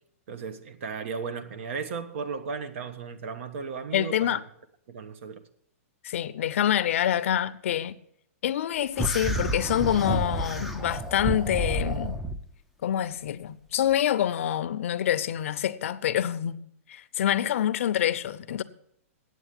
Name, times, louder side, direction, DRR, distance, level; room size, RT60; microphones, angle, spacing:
voice 1, 0.3-4.4 4.9-5.4, right 5 dB, 55° right, 1.2 m, -35 dB
voice 2, 3.9-4.4 6.0-8.0 8.4-12.2 12.8-16.6 16.9-18.6, left 10 dB, 60° left, 0.6 m, -26 dB
sound 1, 9.0-12.4, right 1 dB, ahead, 0.6 m, -30 dB
9.1 x 8.0 x 8.4 m
hypercardioid pair, 155°, 8 cm